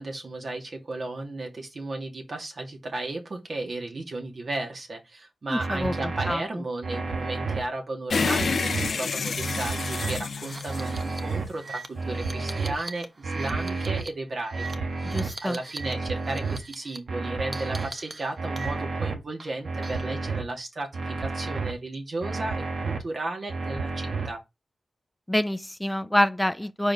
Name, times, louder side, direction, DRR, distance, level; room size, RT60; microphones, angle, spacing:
voice 1, 0.0-24.4, right 2 dB, 60° right, 2.3 m, -34 dB
voice 2, 5.5-6.6 15.0-15.6 25.3-26.9, left 1 dB, 10° left, 0.6 m, -27 dB
sound 1, 5.6-6.3 6.8-7.6 8.1-8.9 9.4-10.2 10.7-11.4 11.9-12.7 13.2-14.0 14.5-15.3 15.8-16.6 17.1-17.9 18.4-19.1 19.6-20.4 20.9-21.7 22.2-23.0 23.5-24.3, right 3 dB, 80° right, 1.4 m, -31 dB
sound 2, 8.1-11.6, left 5 dB, 75° left, 0.5 m, -29 dB
sound 3, 8.7-8.9 9.2-9.3 9.9-15.9 16.2-17.0 17.5-19.0 19.4-20.2, right 3 dB, 45° right, 1.1 m, -42 dB
4.9 x 4.8 x 5.4 m
cardioid pair, 55°, 0 cm